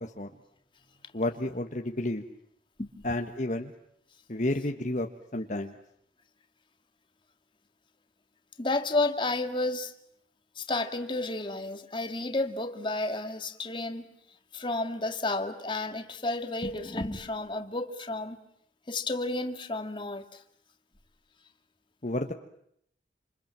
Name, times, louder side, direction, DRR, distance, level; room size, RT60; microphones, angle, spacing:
voice 1, 1.1-2.2 3.0-3.7 4.3-5.1 5.3-5.7 22.0-22.3, left 1 dB, 45° left, 1.5 m, -31 dB
voice 2, 8.6-9.9 10.6-14.1 14.5-18.4 18.9-20.4, left 2 dB, 30° left, 2.1 m, -31 dB
28.0 x 27.5 x 7.6 m
head